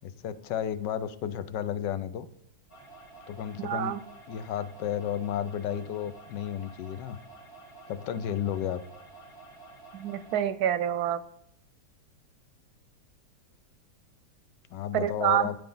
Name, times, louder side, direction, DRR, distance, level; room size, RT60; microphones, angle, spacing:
voice 1, 0.0-2.3 3.3-4.0 4.3-7.2 7.9-8.8 14.7-15.6, left 9 dB, 85° left, 12 dB, 1.3 m, -32 dB
looping annoying scifi voice alarm, 2.7-10.4, right 3 dB, 55° left, 3.8 m, -50 dB
voice 2, 3.6-4.0 9.9-11.2 14.9-15.5, right 10 dB, 70° right, 13 dB, 1.0 m, -27 dB
12.5 x 9.0 x 3.9 m, 0.75 s
omnidirectional pair, 1.9 m